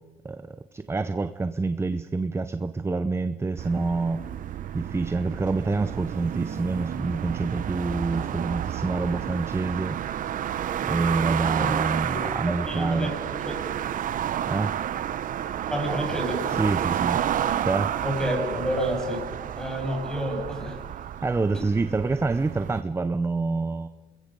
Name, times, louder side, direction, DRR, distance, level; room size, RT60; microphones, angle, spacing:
voice 1, 0.2-4.2 4.7-10.0 10.9-13.1 14.5-14.7 16.5-17.2 17.6-17.9 21.2-23.9, right 3 dB, 15° right, 11 dB, 0.7 m, -27 dB
sound 1, 3.6-22.8, right 10 dB, 55° right, 0.9 m, -30 dB
voice 2, 12.6-13.1 13.4-13.5 15.7-16.4 18.0-19.3 19.6-20.8, equal, 5° left, 1 dB, 7.9 m, -29 dB
28.0 x 21.5 x 5.3 m, 1.3 s
cardioid pair, 110°, 17 cm